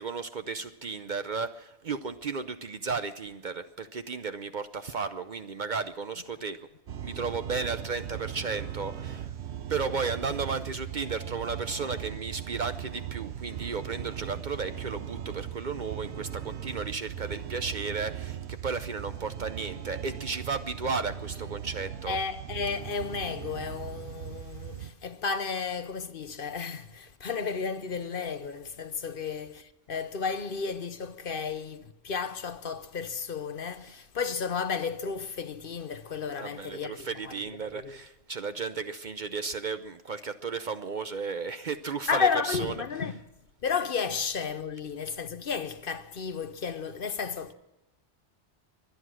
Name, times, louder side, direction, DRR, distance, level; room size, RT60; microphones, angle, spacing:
voice 1, 0.0-6.7 7.0-9.3 9.7-22.2 36.4-42.7, right 4 dB, 50° right, 0.7 m, -34 dB
sound 1, 6.9-24.9, right 10 dB, 70° right, 1.1 m, -39 dB
voice 2, 22.1-37.3 37.7-38.0 42.1-43.2 43.6-47.5, left 5 dB, 55° left, 1.0 m, -33 dB
24.0 x 9.7 x 6.2 m
omnidirectional pair, 1.2 m